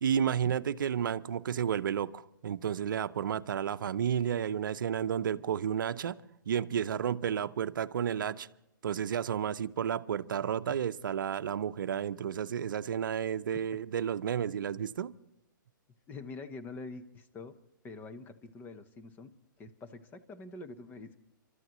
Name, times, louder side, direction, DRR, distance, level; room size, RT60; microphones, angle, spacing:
voice 1, 0.0-6.2 6.5-8.5 8.8-15.1, right 8 dB, 70° right, 11 dB, 0.6 m, -32 dB
voice 2, 16.1-17.5 17.8-19.3 19.6-21.2, left 3 dB, 15° left, 9 dB, 0.9 m, -45 dB
29.5 x 13.0 x 3.0 m, 0.90 s
hypercardioid pair, 140°, 11 cm